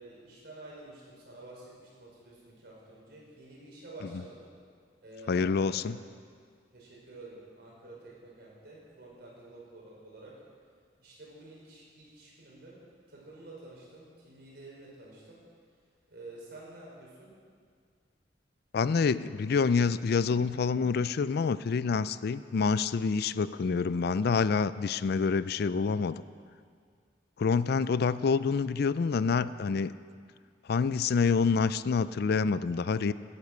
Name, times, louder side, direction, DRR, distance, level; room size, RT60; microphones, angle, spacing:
voice 1, 0.0-4.4 5.0-5.8 6.7-10.4 11.0-12.8 13.1-15.4 16.1-17.3, right 2 dB, 65° right, -4 dB, 5.0 m, -49 dB
voice 2, 5.3-6.0 18.7-26.2 27.4-29.9 30.7-33.1, left 5 dB, 60° left, 16 dB, 0.4 m, -27 dB
16.5 x 9.8 x 6.7 m, 2.1 s
head